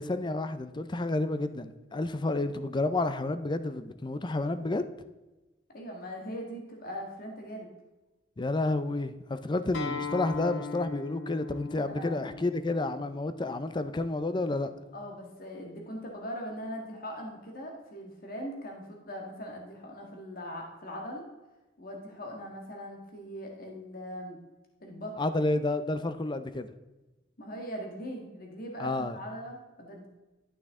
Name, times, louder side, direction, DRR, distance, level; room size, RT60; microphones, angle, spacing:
voice 1, 0.0-4.8 8.4-14.7 25.2-26.7 28.8-29.2, left 2 dB, 25° left, 0.5 m, -30 dB
voice 2, 5.7-7.7 11.8-12.2 14.9-21.3 21.8-24.4 24.8-25.1 27.4-30.1, equal, 50° left, 1.7 m, -40 dB
Acoustic guitar, 9.7-14.9, left 4 dB, 70° left, 1.1 m, -40 dB
12.0 x 6.1 x 3.6 m
head